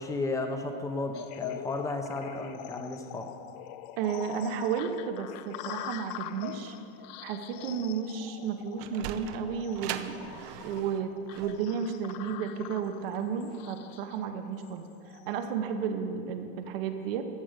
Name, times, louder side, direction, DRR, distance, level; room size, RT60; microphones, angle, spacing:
voice 1, 0.0-3.3, left 2 dB, 10° left, 5 dB, 0.7 m, -34 dB
sound 1, 1.1-15.4, left 13 dB, 45° left, 0.4 m, -44 dB
voice 2, 4.0-6.8 7.2-14.9 15.3-17.2, right 7 dB, 70° right, 7 dB, 1.1 m, -33 dB
Sliding door, 8.5-13.7, right 11 dB, 50° right, 0.5 m, -42 dB
14.0 x 5.0 x 6.6 m, 2.6 s
supercardioid pair, 150°, 30 cm